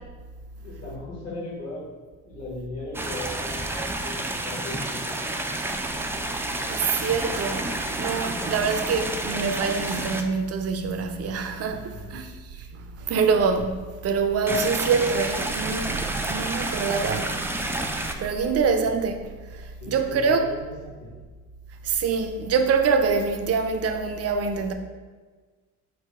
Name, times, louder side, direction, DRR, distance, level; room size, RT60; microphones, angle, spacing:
voice 1, 0.6-1.9 2.2-5.5 11.7-12.2 18.6-18.8 19.8-21.1, left 2 dB, 55° left, 1.5 m, -38 dB
sound 1, 2.9-10.2 14.5-18.1, right 2 dB, 10° right, 0.3 m, -30 dB
voice 2, 6.7-12.3 12.6-13.8 14.0-17.4 18.2-19.2 19.9-20.5 21.8-24.7, right 5 dB, 55° right, 0.5 m, -25 dB
4.6 x 2.2 x 4.7 m
cardioid pair, 90°, 30 cm